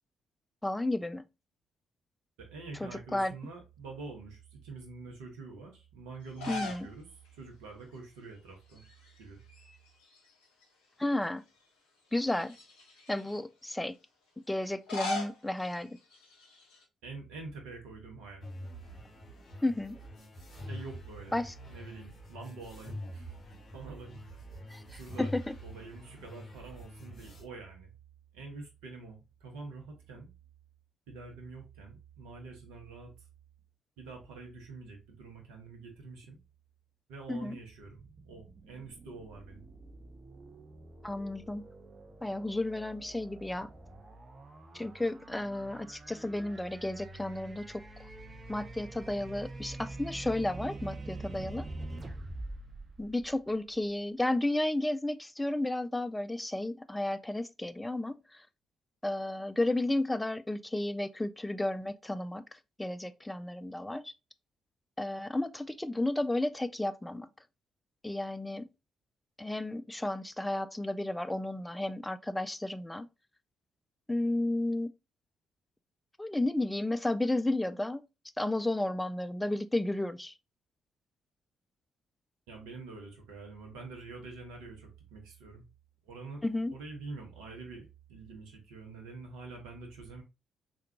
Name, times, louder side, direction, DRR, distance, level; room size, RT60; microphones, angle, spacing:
voice 1, 0.6-1.2 2.8-3.3 6.5-6.9 11.0-11.4 12.1-12.5 13.1-14.0 14.5-16.0 19.6-20.0 21.3-21.5 24.7-25.5 37.3-37.6 41.0-41.6 42.2-43.7 44.7-47.8 48.5-51.7 53.0-58.5 59.0-64.1 65.0-67.3 68.0-68.7 69.4-73.1 74.1-74.9 76.2-78.0 78.4-80.3 86.4-86.7, left 1 dB, 10° left, 0.3 m, -32 dB
voice 2, 2.4-7.1 7.3-8.8 9.2-9.4 17.0-18.4 20.7-23.4 23.7-24.5 24.9-25.3 25.6-27.9 28.3-30.3 31.1-33.1 34.0-36.4 37.1-39.7 82.5-85.6 86.0-90.2, right 3 dB, 65° right, 0.8 m, -46 dB
sound 1, 6.2-6.9 7.3-7.4 8.7-9.2 9.5-10.6 11.2-11.3 12.2-13.4 14.6-16.8, left 2 dB, 70° left, 0.7 m, -40 dB
sound 2, 18.4-27.4, equal, 45° left, 1.3 m, -45 dB
sound 3, 37.7-53.9, right 2 dB, 30° right, 0.6 m, -46 dB
3.4 x 2.3 x 2.8 m
figure-of-eight pair, 40°, 0 cm